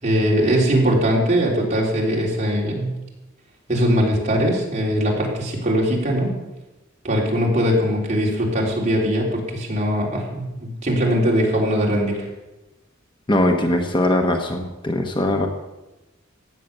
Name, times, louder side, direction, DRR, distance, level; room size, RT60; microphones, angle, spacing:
voice 1, 0.0-2.9 3.7-6.3 7.0-12.3, equal, 35° right, -2 dB, 3.6 m, -21 dB
voice 2, 13.3-15.5, left 1 dB, 25° left, 4 dB, 1.1 m, -20 dB
15.0 x 9.4 x 6.8 m, 1.0 s
head